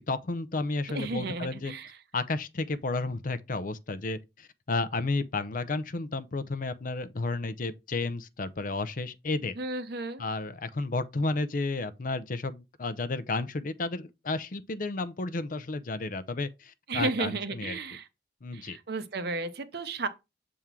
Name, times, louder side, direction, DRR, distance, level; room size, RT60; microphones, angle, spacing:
voice 1, 0.0-1.7 2.1-9.5 10.2-17.8 18.4-18.8, left 3 dB, 50° left, 0.6 m, -32 dB
voice 2, 0.9-2.0 9.6-10.2 16.9-18.1 18.5-20.1, right 3 dB, 65° right, 0.9 m, -33 dB
7.0 x 3.7 x 4.5 m
head